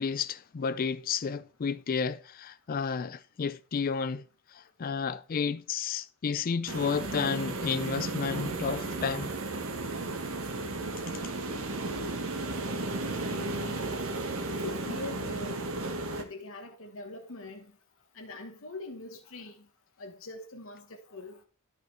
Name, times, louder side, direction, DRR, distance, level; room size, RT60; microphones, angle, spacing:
voice 1, 0.0-4.2 4.5-9.3, left 6 dB, 40° left, 0.4 m, -31 dB
sound 1, 6.7-16.2, right 2 dB, 65° right, 1.3 m, -34 dB
voice 2, 13.0-13.8 14.5-15.7 16.2-17.7 18.1-19.7 20.0-21.4, left 2 dB, 65° left, 1.1 m, -43 dB
11.0 x 5.6 x 4.4 m
head